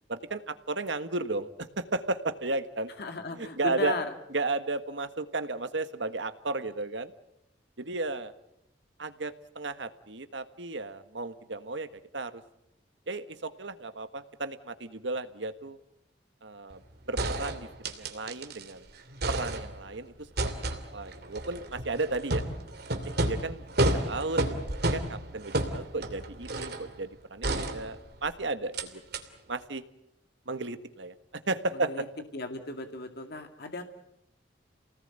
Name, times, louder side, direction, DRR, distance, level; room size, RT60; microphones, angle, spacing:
voice 1, 0.1-2.9 3.4-4.0 4.3-7.1 7.8-8.3 9.0-12.4 13.1-15.8 16.4-16.8 17.1-18.9 19.3-20.1 20.4-22.4 23.2-24.6 24.8-29.0 29.5-29.8 30.5-31.1 31.5-32.1, right 3 dB, 80° right, 10 dB, 1.6 m, -34 dB
voice 2, 3.0-4.1 31.7-32.0 32.3-33.8, left 2 dB, 60° left, 6 dB, 2.2 m, -36 dB
sound 1, 16.7-16.8 17.2-18.7 19.0-20.0 20.4-26.9 27.4-28.3 28.7-28.9 29.1-29.2, right 1 dB, 60° right, 2.8 m, -31 dB
29.0 x 19.0 x 9.0 m, 0.82 s
head